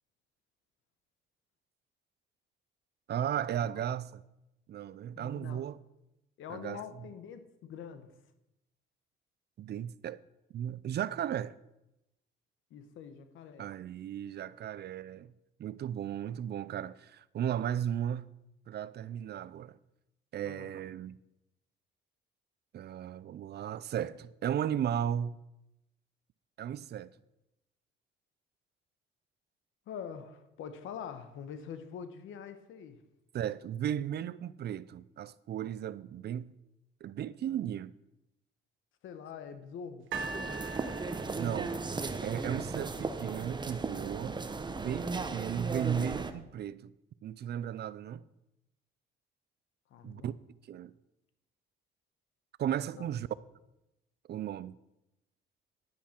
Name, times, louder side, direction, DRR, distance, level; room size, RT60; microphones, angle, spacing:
voice 1, 3.1-4.2 4.7-5.8 6.5-6.8 9.6-10.2 10.5-11.5 13.6-15.3 15.6-18.3 18.7-19.8 20.3-21.2 22.7-25.4 26.6-27.1 33.3-36.5 37.0-37.9 41.3-41.7 42.2-44.4 44.7-46.9 47.2-48.2 50.0-50.4 50.7-50.9 52.6-53.3 54.3-54.8, right 10 dB, 55° right, 0.5 m, -35 dB
voice 2, 5.1-5.7 6.4-8.1 12.7-13.7 20.4-20.7 29.9-33.0 39.0-40.1 49.9-50.3 52.9-53.1, left 7 dB, 80° left, 1.1 m, -45 dB
sound 1, 40.1-46.3, right 3 dB, 20° right, 0.9 m, -36 dB
sound 2, 40.1-43.3 44.1-44.2, right 4 dB, 80° right, 0.9 m, -43 dB
10.5 x 10.5 x 4.4 m
cardioid pair, 90°, 20 cm